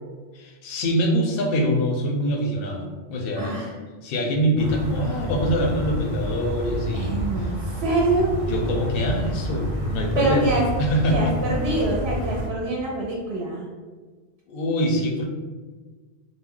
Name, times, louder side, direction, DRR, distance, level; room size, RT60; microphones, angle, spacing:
voice 1, 0.3-3.6 4.0-7.5 8.2-10.5 10.8-11.4 14.5-15.2, equal, 65° left, 1 dB, 0.7 m, -24 dB
voice 2, 3.4-3.7 6.9-8.3 10.2-10.7 11.1-13.7, right 2 dB, 75° right, -3 dB, 0.8 m, -25 dB
sound 1, 4.6-12.5, equal, 25° right, 0.8 m, -29 dB
2.4 x 2.1 x 3.6 m, 1.4 s
omnidirectional pair, 1.1 m